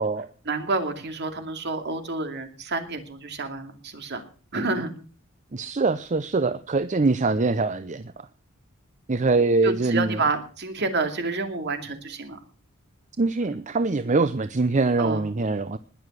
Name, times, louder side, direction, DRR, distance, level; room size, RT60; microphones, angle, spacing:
voice 1, 0.5-4.2 4.5-4.9 9.6-12.4 15.0-15.2, right 3 dB, 55° right, 6 dB, 2.5 m, -29 dB
voice 2, 5.5-8.3 9.1-10.2 13.2-15.8, right 3 dB, 35° right, 13 dB, 0.6 m, -23 dB
20.5 x 7.2 x 6.3 m, 0.40 s
head